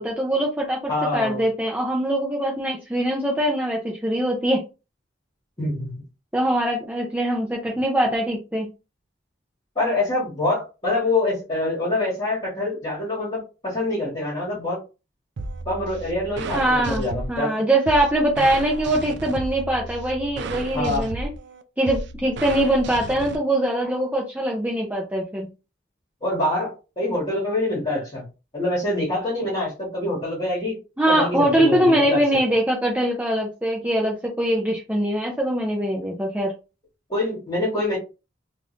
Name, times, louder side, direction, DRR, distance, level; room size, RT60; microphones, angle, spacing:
voice 1, 0.0-0.8 1.1-4.6 6.3-8.7 16.5-17.0 17.3-21.3 21.8-25.5 31.0-36.5, right 1 dB, 10° right, -1 dB, 0.7 m, -22 dB
voice 2, 0.9-1.4 5.6-6.0 9.7-14.8 15.6-17.5 20.7-21.1 26.2-28.2 28.5-30.8 31.1-32.4 37.1-38.0, left 2 dB, 25° left, -7 dB, 1.8 m, -25 dB
sound 1, 15.4-23.4, right 2 dB, 65° right, 0.5 m, -33 dB
3.6 x 2.5 x 3.2 m, 0.29 s
head